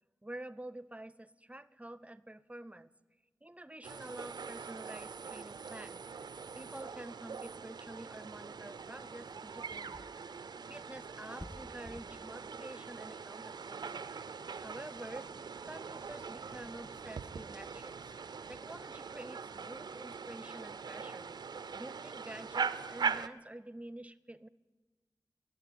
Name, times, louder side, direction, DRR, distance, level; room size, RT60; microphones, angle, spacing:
voice 1, 0.2-2.9 3.4-6.0 6.5-10.1 10.7-14.1 14.6-15.3 15.6-17.9 18.5-21.3 21.7-24.5, right 1 dB, 20° right, 17 dB, 0.5 m, -48 dB
sound 1, 3.8-23.3, right 5 dB, 85° right, 0.5 m, -42 dB
sound 2, 5.8-18.1, left 1 dB, 30° left, 1.6 m, -59 dB
16.0 x 8.1 x 9.4 m, 1.3 s
cardioid pair, 50°, 7 cm